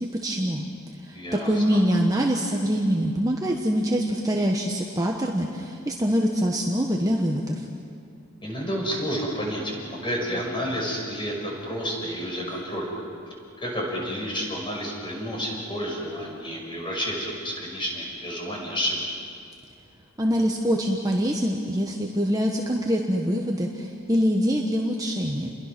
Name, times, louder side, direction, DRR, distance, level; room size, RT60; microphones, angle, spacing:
voice 1, 0.2-0.6 1.1-1.2 1.4-7.6 20.2-25.5, equal, 15° right, 0 dB, 1.3 m, -24 dB
voice 2, 1.1-1.8 8.4-12.9 13.6-19.0, equal, 25° left, -2 dB, 6.0 m, -30 dB
30.0 x 22.5 x 6.1 m, 2.4 s
head